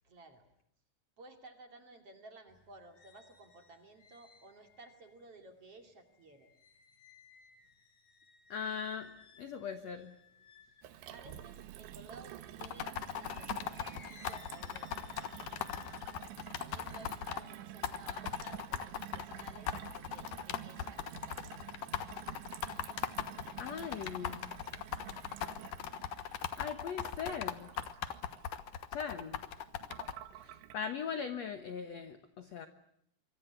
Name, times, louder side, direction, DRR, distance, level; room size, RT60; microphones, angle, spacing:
voice 1, 0.0-0.5 1.2-6.5 11.1-15.6 16.6-21.8, right 2 dB, 35° right, 5 dB, 3.2 m, -56 dB
sound 1, 2.5-12.6 13.2-18.7 19.1-19.7, left 4 dB, 45° left, 4.3 m, -62 dB
voice 2, 8.5-9.1 9.4-10.1 23.6-24.5 26.6-27.7 28.9-29.4 30.3-32.7, left 7 dB, 80° left, 9 dB, 1.5 m, -40 dB
Gurgling / Water tap faucet / Sink (filling or washing), 10.8-30.7, right 12 dB, 80° right, 3.5 m, -50 dB
sound 2, 12.6-17.4 17.8-30.1, left 9 dB, 65° left, 2.4 m, -39 dB
26.5 x 24.5 x 8.2 m, 0.73 s
omnidirectional pair, 5.1 m